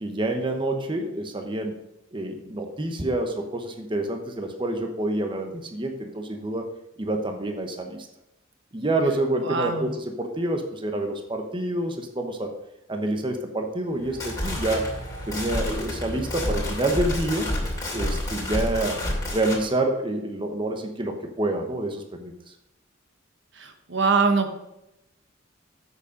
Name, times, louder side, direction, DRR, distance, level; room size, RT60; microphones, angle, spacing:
voice 1, 0.0-1.8 2.1-6.7 7.0-8.1 8.7-12.5 12.9-14.9 15.3-17.5 17.9-18.9 19.3-22.3, right 1 dB, 25° right, 4 dB, 1.0 m, -27 dB
voice 2, 9.4-9.9 23.6-24.6, right 4 dB, 65° right, 6 dB, 1.2 m, -23 dB
sound 1, 14.0-19.6, left 1 dB, 20° left, 2.6 m, -29 dB
8.1 x 6.9 x 5.1 m, 0.86 s
head